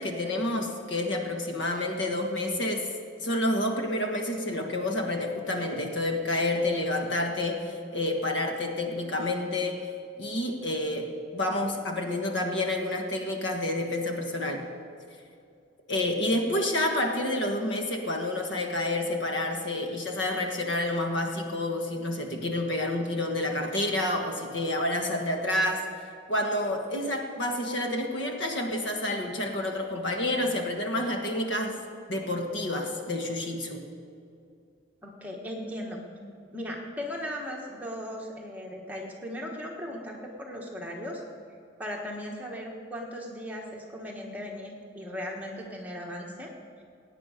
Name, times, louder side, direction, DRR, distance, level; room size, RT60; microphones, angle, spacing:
voice 1, 0.0-2.9 3.2-9.8 10.2-14.6 15.9-25.9 26.3-31.8 32.1-33.8, left 1 dB, 75° left, 3 dB, 1.5 m, -29 dB
voice 2, 35.0-36.0 36.5-41.2 41.8-46.5, equal, 10° right, -1 dB, 1.4 m, -37 dB
17.0 x 9.2 x 5.1 m, 2.4 s
head